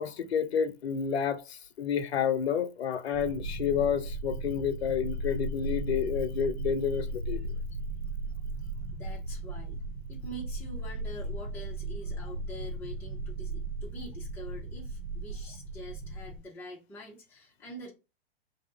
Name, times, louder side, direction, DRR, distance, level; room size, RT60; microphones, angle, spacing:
voice 1, 0.0-7.5, left 7 dB, 70° left, 0.5 m, -30 dB
sound 1, 3.1-16.4, right 2 dB, 55° right, 0.7 m, -36 dB
voice 2, 8.9-9.8 10.1-17.9, right 1 dB, 5° left, 0.6 m, -45 dB
2.7 x 2.3 x 4.0 m
figure-of-eight pair, 110°, 32 cm